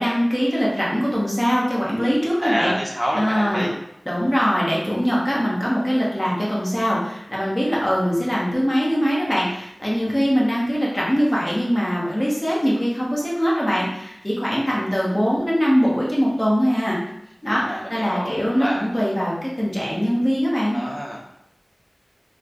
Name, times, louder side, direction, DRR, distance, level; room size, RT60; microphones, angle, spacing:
voice 1, 0.0-2.7 3.1-3.7 4.1-17.0 17.4-20.8, equal, 25° left, -6 dB, 1.1 m, -22 dB
voice 2, 2.4-3.7 17.6-18.9 20.7-21.2, equal, 5° right, -5 dB, 1.0 m, -27 dB
3.2 x 2.2 x 3.8 m, 0.81 s
wide cardioid pair, 50°, 0 cm